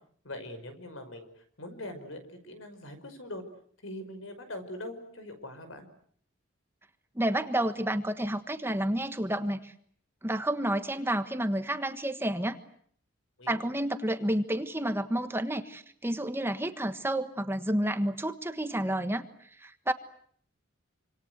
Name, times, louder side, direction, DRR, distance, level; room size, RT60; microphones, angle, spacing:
voice 1, 0.2-3.4 3.8-5.9 13.4-13.6, left 1 dB, 80° left, 8 dB, 5.5 m, -42 dB
voice 2, 7.1-9.7 10.2-12.6 13.5-19.3 19.6-19.9, right 1 dB, 10° right, 9 dB, 1.4 m, -30 dB
27.5 x 26.5 x 8.0 m, 0.63 s
head